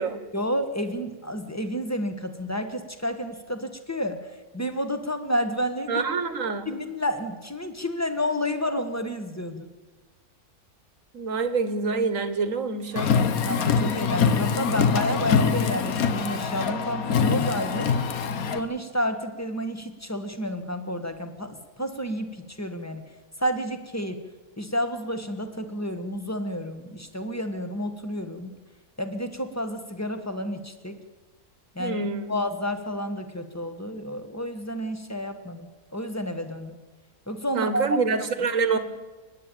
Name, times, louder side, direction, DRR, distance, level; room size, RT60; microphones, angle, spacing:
voice 1, 0.3-6.0 6.7-9.7 13.4-17.9 18.5-23.0 23.4-24.2 24.6-28.6 29.0-31.0 31.7-32.0 32.3-36.8 37.3-38.0, equal, 10° left, 8 dB, 1.4 m, -30 dB
voice 2, 5.9-6.7 11.1-13.2 31.8-32.4 37.6-38.8, right 4 dB, 60° right, 11 dB, 1.7 m, -26 dB
Car, 13.0-18.6, left 6 dB, 70° left, 1.5 m, -24 dB
29.5 x 10.0 x 9.0 m, 1.3 s
omnidirectional pair, 1.6 m